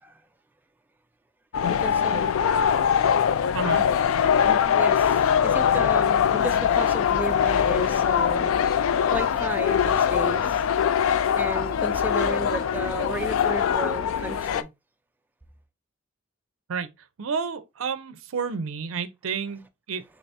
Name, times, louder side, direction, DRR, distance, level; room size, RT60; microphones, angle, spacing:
sound 1, 1.5-14.6, left 8 dB, 75° left, 0.3 m, -22 dB
voice 1, 1.7-2.7 4.4-8.6 9.1-10.6 11.3-14.7, right 1 dB, 10° right, 0.3 m, -34 dB
voice 2, 3.5-3.9 16.7-20.0, right 5 dB, 80° right, 0.5 m, -31 dB
2.9 x 2.8 x 3.2 m
head